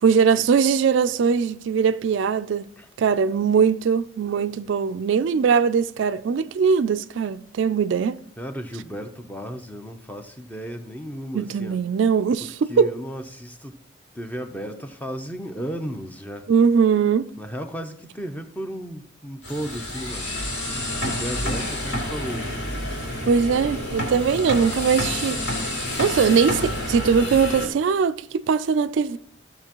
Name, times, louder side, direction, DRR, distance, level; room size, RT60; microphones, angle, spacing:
voice 1, 0.0-2.7 3.0-8.2 11.3-12.9 16.5-17.3 23.3-29.2, right 6 dB, 65° right, 0.3 m, -21 dB
voice 2, 8.4-11.8 12.4-13.8 14.1-16.5 17.4-20.4 21.1-22.7, equal, 10° left, 0.6 m, -34 dB
sound 1, 19.4-27.7, left 1 dB, 60° left, 2.9 m, -29 dB
15.0 x 6.6 x 3.0 m
head